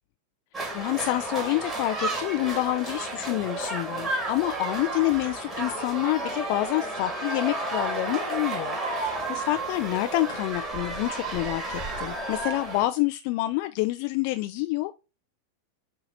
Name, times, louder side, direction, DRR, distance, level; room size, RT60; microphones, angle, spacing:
sound 1, 0.5-12.9, right 2 dB, 15° right, 2.5 m, -32 dB
voice 1, 0.7-15.0, left 18 dB, 45° left, 0.4 m, -28 dB
7.8 x 2.9 x 4.1 m
figure-of-eight pair, 90°, 0 cm